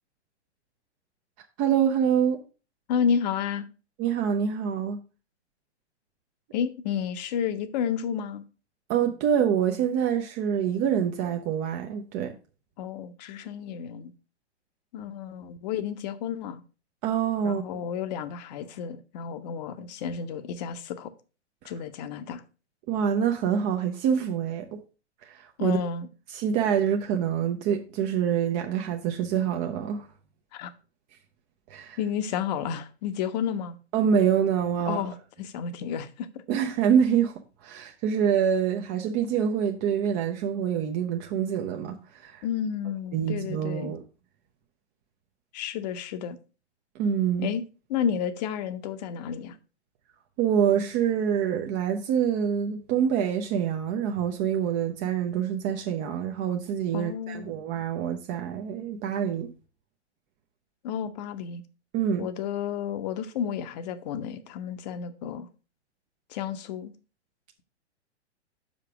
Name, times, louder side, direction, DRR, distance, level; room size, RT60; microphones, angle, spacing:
voice 1, 1.6-2.4 4.0-5.0 8.9-12.4 17.0-17.8 22.9-24.8 25.2-25.8 26.3-30.1 31.7-32.0 33.9-35.1 36.5-37.3 37.6-42.4 43.1-44.0 46.9-47.5 50.4-59.5 61.9-62.3, right 8 dB, 25° right, 0.5 m, -26 dB
voice 2, 2.9-3.7 6.5-8.4 12.8-14.1 14.9-16.6 17.4-21.1 21.6-22.4 25.6-26.1 30.5-30.7 32.0-33.8 34.8-36.4 42.4-43.9 45.5-46.4 47.4-47.6 47.9-49.6 56.9-57.5 60.8-61.6 62.2-65.5 66.3-66.9, left 8 dB, 40° left, 0.8 m, -31 dB
6.5 x 5.2 x 4.8 m
figure-of-eight pair, 110°, 34 cm